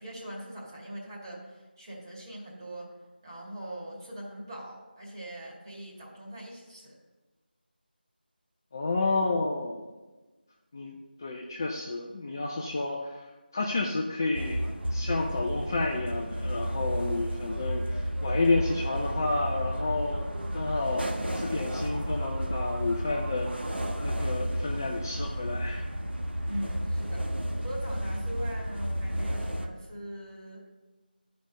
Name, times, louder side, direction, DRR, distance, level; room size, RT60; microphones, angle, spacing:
voice 1, 0.0-3.0 3.2-7.0 26.4-27.3 27.6-30.7, right 1 dB, 25° right, -5 dB, 2.2 m, -41 dB
voice 2, 8.7-9.9 10.7-10.9 11.2-13.1 13.5-14.6 14.9-20.2 20.5-21.1 21.3-25.9, left 3 dB, 20° left, 0 dB, 0.5 m, -30 dB
sound 1, 14.3-29.7, equal, 80° right, 1.3 m, -32 dB
11.5 x 5.2 x 5.3 m, 1.2 s
figure-of-eight pair, 170°, 6 cm